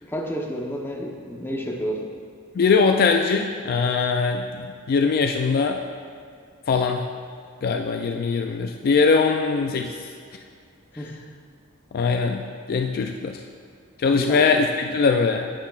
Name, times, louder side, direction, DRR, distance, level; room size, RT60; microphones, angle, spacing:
voice 1, 0.0-2.0 11.0-11.2 14.1-14.5, equal, 10° left, 0 dB, 0.8 m, -30 dB
voice 2, 2.5-5.8 6.7-7.0 7.6-10.1 11.9-13.4 14.0-15.5, left 4 dB, 45° left, 4 dB, 0.3 m, -21 dB
10.0 x 8.3 x 2.4 m, 2.2 s
head